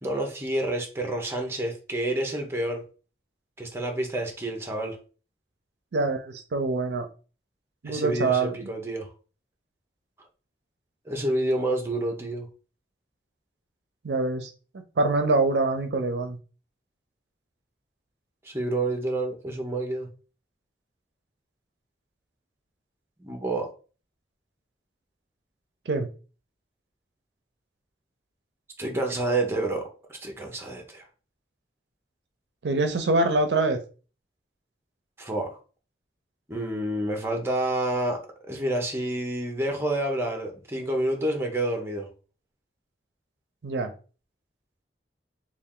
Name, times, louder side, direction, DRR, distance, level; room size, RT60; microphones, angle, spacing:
voice 1, 0.0-2.8 3.6-5.0 7.9-9.1 11.1-12.5 18.4-20.1 23.2-23.7 28.8-29.9 30.2-31.1 35.2-35.6 36.5-38.2 38.5-42.1, right 1 dB, 15° right, 0.7 m, -28 dB
voice 2, 5.9-7.1 7.8-8.5 14.0-14.5 15.0-16.4 25.9-26.1 32.6-33.8 43.6-43.9, right 3 dB, 70° right, 0.5 m, -24 dB
3.4 x 2.4 x 3.6 m
head